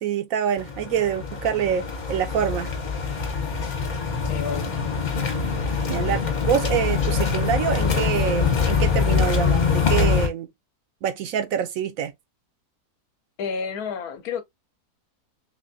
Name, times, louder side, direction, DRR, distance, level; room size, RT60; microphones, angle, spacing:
voice 1, 0.0-2.7 5.9-10.5 11.0-12.1, right 8 dB, 70° right, 0.9 m, -26 dB
sound 1, 0.6-10.3, left 5 dB, 50° left, 1.3 m, -24 dB
voice 2, 4.3-4.7 13.4-14.4, left 6 dB, 70° left, 1.2 m, -30 dB
3.5 x 3.3 x 2.6 m
omnidirectional pair, 1.7 m